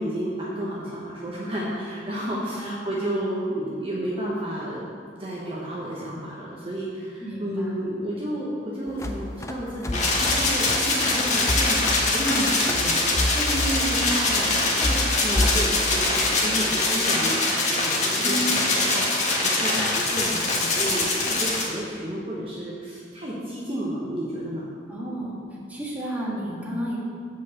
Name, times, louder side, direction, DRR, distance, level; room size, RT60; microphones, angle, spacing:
voice 1, 0.0-4.8 5.2-24.6, right 1 dB, 30° right, -6 dB, 1.1 m, -31 dB
voice 2, 2.5-3.2 7.2-7.8 13.8-14.1 18.2-18.6 24.9-25.4 25.7-27.0, right 1 dB, 10° right, -6 dB, 1.6 m, -32 dB
sound 1, 8.9-15.7, left 1 dB, 15° left, 0.4 m, -29 dB
sound 2, 9.9-21.7, left 2 dB, 40° left, 1.5 m, -23 dB
8.0 x 4.7 x 7.0 m, 2.2 s
head